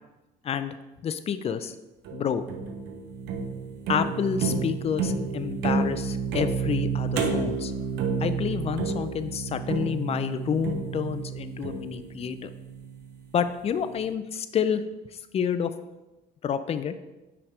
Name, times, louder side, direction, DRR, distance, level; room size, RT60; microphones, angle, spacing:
voice 1, 0.4-0.8 1.0-1.7 2.1-2.4 3.9-7.7 8.2-12.5 13.3-14.8 15.3-15.7 16.4-16.9, left 7 dB, 35° left, 11 dB, 0.4 m, -29 dB
sound 1, 2.0-13.2, right 5 dB, 85° right, 0.8 m, -30 dB
5.8 x 5.1 x 3.2 m, 1.0 s
cardioid pair, 110°, 17 cm